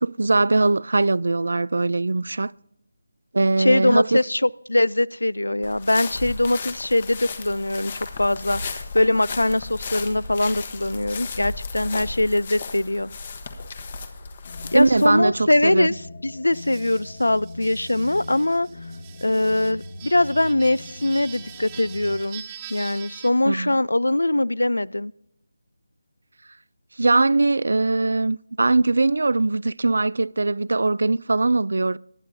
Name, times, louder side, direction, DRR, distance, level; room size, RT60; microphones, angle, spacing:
voice 1, 0.0-2.5 3.3-4.2 14.7-15.9 23.5-23.8 27.0-32.0, right 3 dB, 70° right, 0.3 m, -21 dB
voice 2, 3.6-13.1 14.7-18.7 19.2-22.4 22.7-25.1, left 1 dB, 90° left, 0.3 m, -22 dB
sound 1, 5.6-15.1, left 4 dB, 40° left, 1.1 m, -35 dB
sound 2, 14.4-22.2, left 2 dB, 60° left, 1.6 m, -40 dB
sound 3, 16.5-23.3, right 10 dB, 20° right, 0.7 m, -43 dB
20.5 x 8.8 x 2.6 m
figure-of-eight pair, 165°, 0 cm